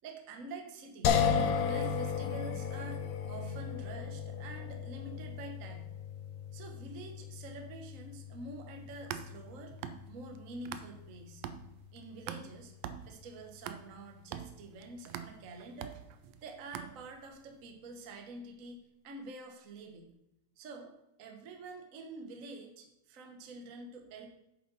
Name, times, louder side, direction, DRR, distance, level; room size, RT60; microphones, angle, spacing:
voice 1, 0.0-1.3 1.6-5.9 6.5-9.8 10.1-11.4 11.9-12.7 13.0-16.0 16.4-20.1 20.6-24.3, right 3 dB, 60° right, 3 dB, 0.8 m, -47 dB
sound 1, 1.0-14.1, left 7 dB, 70° left, 2.0 m, -36 dB
sound 2, 8.8-11.1 11.4-17.4, right 9 dB, 80° right, 1.5 m, -45 dB
9.2 x 7.6 x 4.1 m, 0.87 s
omnidirectional pair, 3.4 m